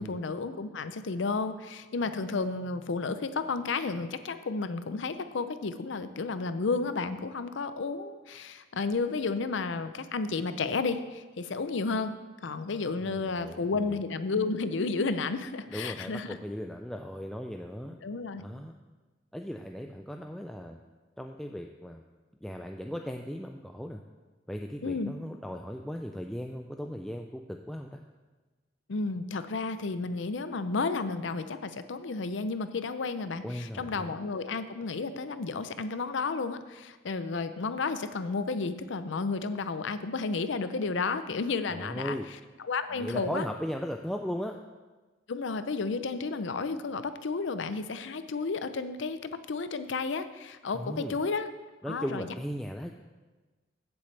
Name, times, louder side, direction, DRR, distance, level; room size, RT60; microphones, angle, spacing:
voice 1, 0.0-12.1 12.4-16.3 18.0-18.4 24.8-25.1 28.9-42.2 42.6-43.4 45.3-51.5 51.9-52.2, left 4 dB, 70° left, 11 dB, 0.6 m, -32 dB
voice 2, 13.0-14.0 15.7-18.0 18.4-18.7 19.3-20.8 21.2-22.0 22.4-24.0 24.5-28.0 33.4-34.1 41.7-42.3 42.9-44.6 50.7-51.2 51.8-52.9, equal, ahead, 2 dB, 0.3 m, -37 dB
15.0 x 7.0 x 3.3 m, 1.2 s
head